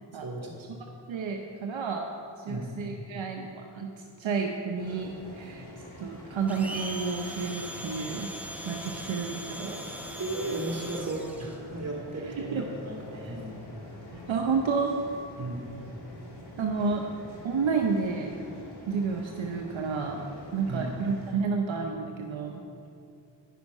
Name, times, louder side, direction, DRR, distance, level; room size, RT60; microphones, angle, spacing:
voice 1, 0.1-0.6 2.5-2.7 10.2-13.6 15.4-15.7 20.7-20.9, right 2 dB, 30° right, -2 dB, 2.3 m, -35 dB
voice 2, 1.1-2.1 2.4-3.9 4.2-5.6 6.0-8.3 8.7-9.8 12.4-12.6 13.1-13.3 14.3-14.9 16.6-17.0 17.4-18.3 18.9-20.2 20.5-22.6, right 5 dB, 70° right, 2 dB, 0.8 m, -30 dB
sound 1, 4.8-21.4, left 1 dB, 55° left, 2.0 m, -46 dB
Domestic sounds home sounds, 6.5-11.6, equal, 5° right, 0.9 m, -40 dB
10.0 x 5.8 x 5.4 m, 2.5 s
cardioid pair, 55°, 47 cm